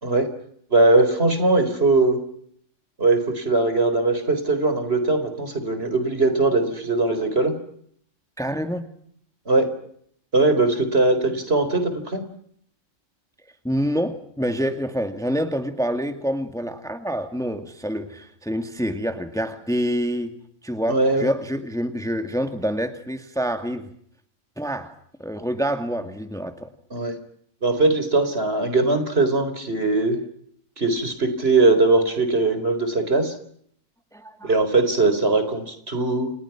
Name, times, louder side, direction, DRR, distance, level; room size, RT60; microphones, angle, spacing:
voice 1, 0.7-2.2 3.0-7.5 9.5-9.7 10.3-12.2 20.9-21.3 26.9-27.1 27.6-30.2 30.8-33.3 34.4-36.3, right 2 dB, 50° right, 9 dB, 4.5 m, -20 dB
voice 2, 8.4-8.9 13.6-20.3 20.6-23.9 24.6-24.9 25.2-26.7 34.1-34.5, equal, ahead, 7 dB, 2.1 m, -27 dB
30.0 x 29.0 x 6.0 m, 0.67 s
omnidirectional pair, 1.4 m